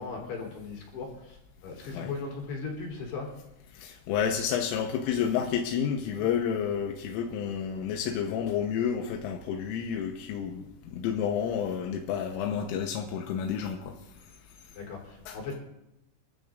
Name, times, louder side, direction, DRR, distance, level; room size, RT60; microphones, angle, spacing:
voice 1, 0.0-3.3 14.7-15.6, left 4 dB, 60° left, -1 dB, 5.7 m, -38 dB
voice 2, 3.7-13.9 15.3-15.5, left 8 dB, 85° left, 2 dB, 3.5 m, -30 dB
29.0 x 13.0 x 2.6 m, 0.90 s
omnidirectional pair, 5.9 m